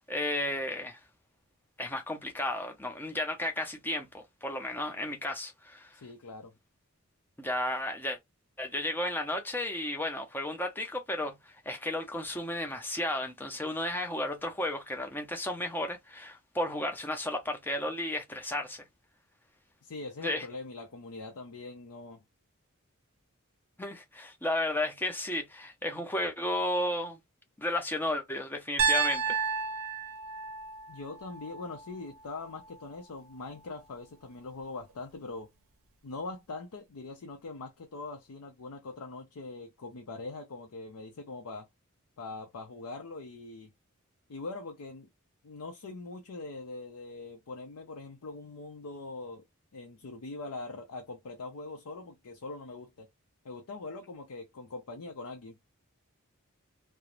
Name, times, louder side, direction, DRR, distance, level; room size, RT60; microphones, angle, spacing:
voice 1, 0.1-1.0 1.8-6.0 7.4-8.2 8.6-18.8 20.2-20.5 23.8-27.2 27.6-29.4, left 1 dB, 10° left, 0.4 m, -33 dB
voice 2, 5.9-6.5 19.8-22.2 30.9-35.5 36.0-41.7 42.2-43.7 44.3-45.1 45.4-49.4 49.7-53.1 53.4-55.6, left 3 dB, 85° left, 0.5 m, -42 dB
Piano, 28.8-32.9, right 6 dB, 75° right, 0.6 m, -32 dB
2.4 x 2.0 x 2.9 m
head